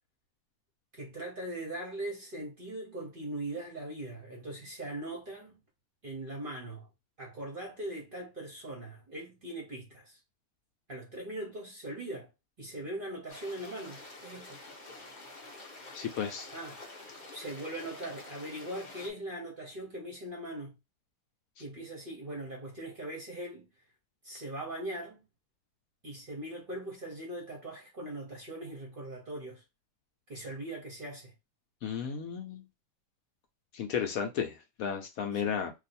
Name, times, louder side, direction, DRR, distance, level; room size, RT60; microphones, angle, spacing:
voice 1, 0.9-5.6 6.0-6.9 7.2-10.2 10.9-12.3 12.6-14.6 16.5-20.7 21.6-23.7 24.2-25.2 26.0-29.6 30.3-31.3, right 1 dB, 45° right, 0.8 m, -40 dB
sound 1, 13.3-19.1, left 2 dB, 40° left, 0.7 m, -48 dB
voice 2, 15.9-16.5 31.8-32.6 33.7-35.7, left 7 dB, 70° left, 0.9 m, -33 dB
2.6 x 2.4 x 4.1 m
omnidirectional pair, 1.7 m